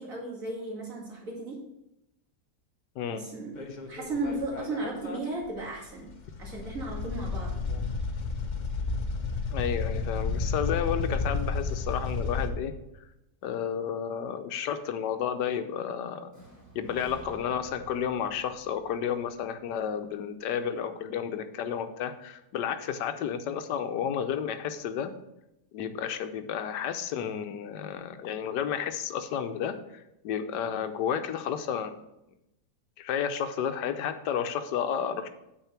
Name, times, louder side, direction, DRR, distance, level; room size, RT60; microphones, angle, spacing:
voice 1, 0.0-1.6 3.1-3.6 3.9-6.1 6.4-7.6, right 2 dB, 55° right, -3 dB, 2.6 m, -35 dB
sound 1, 3.6-5.2 5.5-5.6 6.0-12.5, left 4 dB, 40° left, 0.7 m, -32 dB
voice 2, 9.5-12.7 13.4-16.3 16.7-25.1 25.7-31.9 33.0-35.3, left 8 dB, 85° left, 9 dB, 1.3 m, -32 dB
sound 2, 16.3-20.2, right 3 dB, 10° right, 2.3 m, -52 dB
8.9 x 4.5 x 5.8 m, 0.88 s
omnidirectional pair, 1.8 m